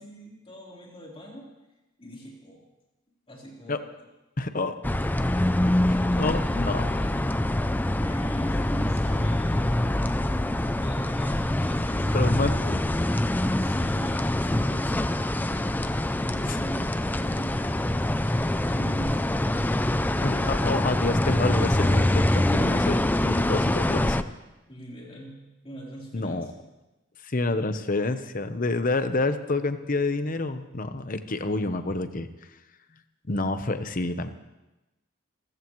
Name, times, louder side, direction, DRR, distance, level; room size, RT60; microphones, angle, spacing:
voice 1, 0.0-1.5 2.0-2.6 3.3-3.8 6.1-10.0 10.8-12.3 13.6-17.8 18.5-19.4 24.7-26.5, right 1 dB, 30° left, -3 dB, 3.8 m, -43 dB
voice 2, 4.4-4.8 5.9-6.8 12.1-12.8 16.5-16.6 20.2-24.3 26.1-26.5 27.2-32.3 33.3-34.3, left 2 dB, 45° left, 9 dB, 0.9 m, -28 dB
sound 1, 4.8-24.2, left 1 dB, 10° left, 0.4 m, -25 dB
28.5 x 14.5 x 3.1 m, 1.0 s
head